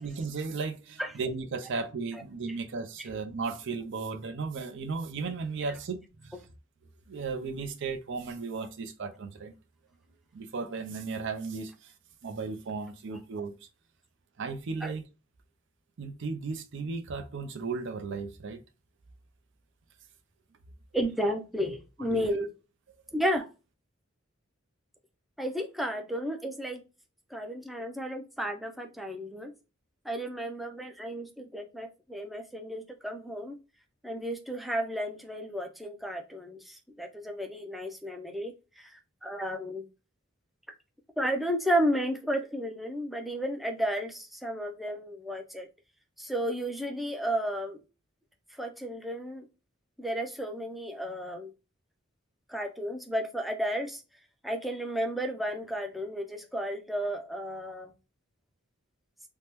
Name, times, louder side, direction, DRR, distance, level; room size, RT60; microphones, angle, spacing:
voice 1, 0.0-6.3 7.1-9.5 10.3-11.9 12.2-13.5 14.4-15.0 16.0-18.6 22.0-22.3, right 4 dB, 60° right, 0.5 m, -35 dB
voice 2, 20.9-22.5 23.1-23.5 25.4-26.8 27.3-29.5 30.0-33.6 34.0-39.8 41.2-45.7 46.2-47.8 48.5-49.5 50.0-51.5 52.5-54.0 54.4-57.9, equal, ahead, 0.4 m, -33 dB
3.3 x 2.1 x 2.9 m
head